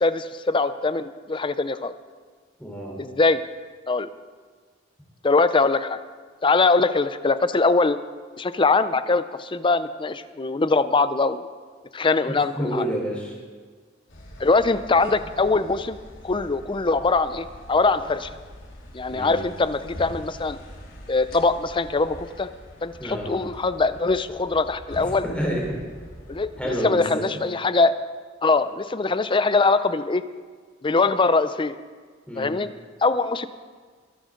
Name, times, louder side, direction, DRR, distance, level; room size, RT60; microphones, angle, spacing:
voice 1, 0.0-1.9 3.0-3.4 3.9-4.1 5.2-6.0 6.4-8.0 8.4-11.5 11.9-12.8 14.4-16.0 16.2-18.3 18.9-20.6 21.1-22.5 22.8-25.2 26.3-27.9 28.4-30.2 30.8-31.7 32.4-32.7 33.0-33.5, left 3 dB, 25° left, 12 dB, 0.5 m, -22 dB
voice 2, 2.6-3.0 12.3-13.4 19.1-19.4 23.0-23.3 25.0-25.8 26.6-27.4 32.3-32.5, equal, 5° left, -2 dB, 3.8 m, -29 dB
sound 1, 14.1-26.7, left 1 dB, 70° left, 3.5 m, -43 dB
23.0 x 11.5 x 3.9 m, 1.5 s
head